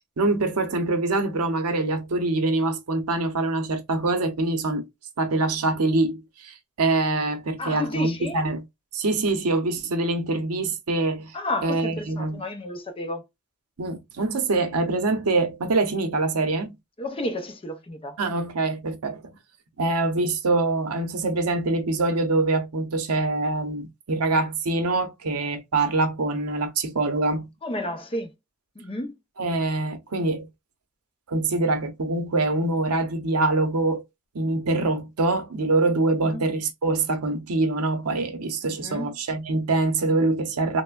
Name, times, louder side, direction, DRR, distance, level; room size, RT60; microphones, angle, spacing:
voice 1, 0.2-4.9 5.2-8.6 8.9-11.3 11.6-12.4 13.8-16.7 18.2-19.2 19.8-27.5 29.4-30.5 31.3-34.0 34.3-40.8, right 2 dB, 75° right, 0.7 m, -24 dB
voice 2, 7.6-8.4 11.3-13.2 17.0-18.2 27.6-28.3 28.8-29.1 36.2-36.5 38.6-39.2, left 1 dB, 25° left, 0.5 m, -31 dB
3.2 x 2.1 x 2.2 m
head